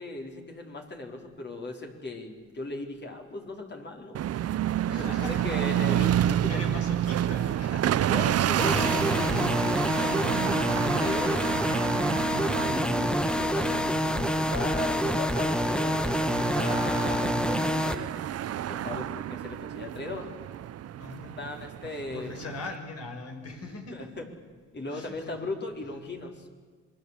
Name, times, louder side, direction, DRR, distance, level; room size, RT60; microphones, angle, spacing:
voice 1, 0.0-4.2 5.0-6.8 8.1-11.6 12.6-14.0 14.3-18.2 18.7-20.3 21.4-22.3 23.9-24.3 24.7-26.5, left 2 dB, 35° left, 2 dB, 4.6 m, -37 dB
sound 1, 4.1-22.8, right 11 dB, 55° right, 0.7 m, -30 dB
voice 2, 4.9-5.6 6.1-8.1 12.9-15.0 21.0-21.4 22.1-24.1 24.9-25.4, left 3 dB, 55° left, 4 dB, 6.0 m, -42 dB
sound 2, 8.6-18.0, equal, 5° left, 1.3 m, -27 dB
27.0 x 21.0 x 8.4 m, 1.5 s
cardioid pair, 90°, 30 cm